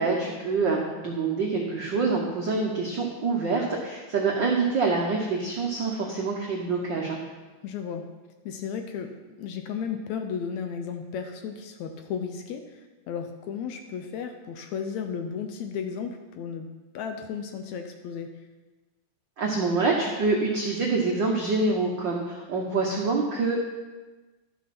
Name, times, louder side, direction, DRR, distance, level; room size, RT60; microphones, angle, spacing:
voice 1, 0.0-7.2 19.4-23.7, right 3 dB, 85° right, -1 dB, 1.0 m, -26 dB
voice 2, 7.6-8.1 8.5-9.1 9.4-16.7 16.9-18.3, left 7 dB, 75° left, 6 dB, 1.8 m, -34 dB
12.0 x 6.5 x 5.9 m, 1.2 s
omnidirectional pair, 3.7 m